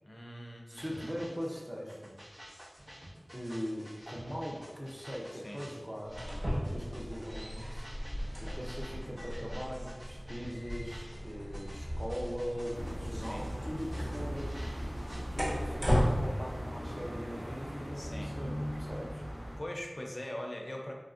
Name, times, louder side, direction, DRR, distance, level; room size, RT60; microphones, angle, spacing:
voice 1, 0.0-1.1 5.3-5.6 13.1-13.5 18.0-18.3 19.6-20.9, left 1 dB, 45° left, 1 dB, 0.4 m, -42 dB
voice 2, 0.7-2.2 3.3-6.2 6.5-7.8 8.4-14.6 15.3-19.2, equal, 20° right, -2 dB, 0.5 m, -40 dB
sound 1, 0.7-15.2, equal, 85° right, 1.3 m, -51 dB
sound 2, 6.1-16.1, equal, 40° right, 1.4 m, -36 dB
sound 3, 12.7-19.6, equal, 55° right, 0.8 m, -39 dB
3.1 x 2.6 x 2.4 m, 1.2 s
wide cardioid pair, 45°, 0 cm